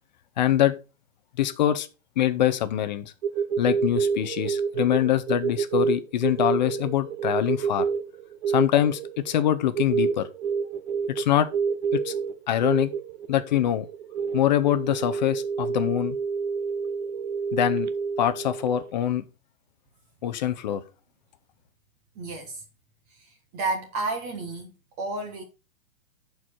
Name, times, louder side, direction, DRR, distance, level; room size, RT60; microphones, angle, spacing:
voice 1, 0.4-0.7 1.4-1.9 2.2-3.1 3.6-7.9 8.5-10.3 11.1-11.5 11.9-12.1 12.5-12.9 13.3-13.9 14.3-16.2 17.5-17.9 18.2-19.2 20.2-20.8, left 11 dB, 35° left, 0.5 m, -24 dB
sound 1, 3.2-18.9, right 6 dB, 50° right, 0.8 m, -28 dB
voice 2, 22.2-22.6 23.1-25.4, right 2 dB, 15° right, 0.5 m, -32 dB
11.0 x 4.7 x 4.1 m
hypercardioid pair, 150°, 41 cm